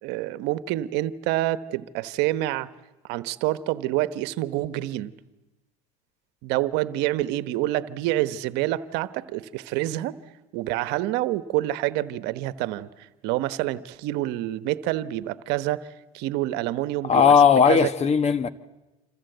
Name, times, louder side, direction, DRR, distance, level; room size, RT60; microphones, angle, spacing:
voice 1, 0.0-2.7 3.1-5.1 6.4-10.2 10.5-12.9 13.2-15.9 16.1-17.9, right 15 dB, 70° right, 1.1 m, -27 dB
voice 2, 17.1-18.5, left 6 dB, 35° left, 1.4 m, -17 dB
27.0 x 27.0 x 8.0 m
supercardioid pair, 85°, 18 cm